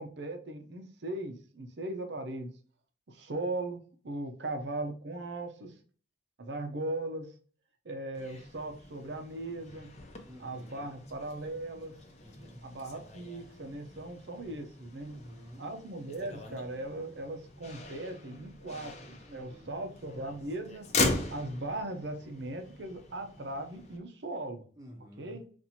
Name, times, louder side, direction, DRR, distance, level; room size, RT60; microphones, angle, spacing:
voice 1, 0.0-2.5 3.1-5.7 6.4-7.3 7.8-9.9 10.4-12.0 12.6-15.2 15.6-20.9 21.3-24.6 25.2-25.4, right 2 dB, 75° right, 6 dB, 0.7 m, -38 dB
Motor vehicle (road), 8.1-24.0, left 3 dB, 40° left, 0.6 m, -40 dB
voice 2, 10.2-11.0 12.2-12.7 15.0-15.6 19.3-19.8 24.8-25.4, equal, 20° right, 1 dB, 0.7 m, -50 dB
4.2 x 2.6 x 2.8 m, 0.42 s
head